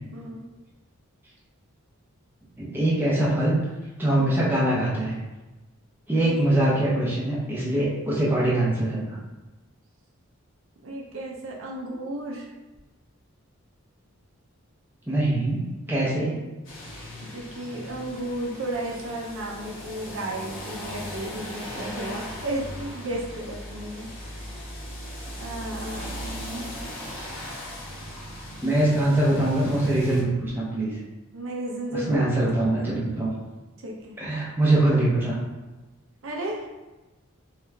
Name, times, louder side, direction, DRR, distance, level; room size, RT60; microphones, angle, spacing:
voice 1, 2.6-3.6 4.0-5.1 6.1-9.2 15.1-15.6 15.9-16.4 28.6-31.0 31.9-33.3 34.2-35.4, right 1 dB, 10° right, -6 dB, 0.8 m, -23 dB
voice 2, 10.8-12.5 17.3-24.1 24.4-24.7 25.4-26.9 31.3-32.7 33.8-34.2 36.2-36.7, right 1 dB, 60° right, -2 dB, 0.6 m, -34 dB
sound 1, 16.6-30.2, equal, 55° left, 1.1 m, -38 dB
3.2 x 3.0 x 3.5 m, 1.1 s
head